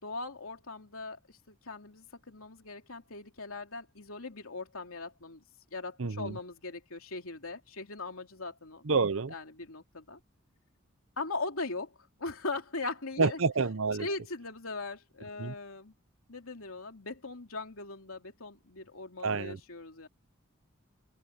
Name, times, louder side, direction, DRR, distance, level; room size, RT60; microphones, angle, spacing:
voice 1, 0.0-5.4 5.7-8.8 9.3-10.2 11.2-13.4 14.0-15.9 16.3-20.1, left 3 dB, 90° left, 3.1 m, -40 dB
voice 2, 6.0-6.4 8.8-9.3 13.2-14.1 15.4-15.5 19.2-19.6, right 4 dB, 70° right, 0.8 m, -28 dB
open air
head